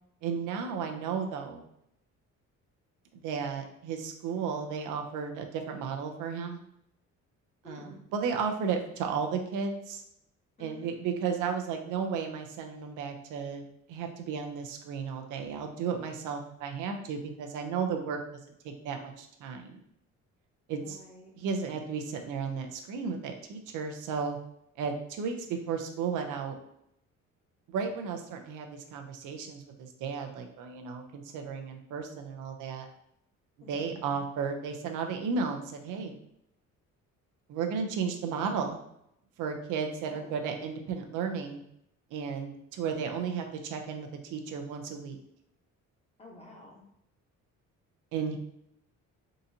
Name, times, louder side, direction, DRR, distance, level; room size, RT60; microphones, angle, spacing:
voice 1, 0.2-1.6 3.1-6.6 7.6-10.0 10.6-18.2 18.6-19.8 20.7-21.0 21.4-24.4 24.8-26.5 27.7-32.9 33.7-36.1 37.5-38.8 39.4-41.6 42.1-45.2 48.1-48.4, right 6 dB, 85° right, 4 dB, 0.6 m, -34 dB
voice 2, 7.6-8.0 10.6-10.9 20.8-21.4 33.6-34.1 40.0-40.3 46.2-46.8, left 2 dB, 20° left, -2 dB, 0.8 m, -51 dB
3.8 x 2.8 x 2.6 m, 0.77 s
cardioid pair, 160°, 30 cm